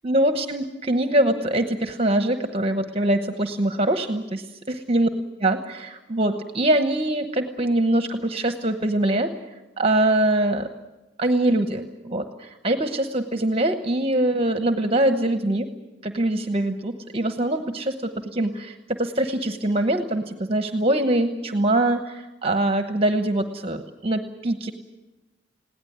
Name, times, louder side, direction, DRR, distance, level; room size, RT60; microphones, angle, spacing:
voice 1, 0.0-5.1 5.4-9.3 9.8-10.7 11.2-15.7 16.0-24.7, right 1 dB, 30° right, 7 dB, 1.0 m, -23 dB
21.0 x 17.5 x 9.6 m, 1.0 s
head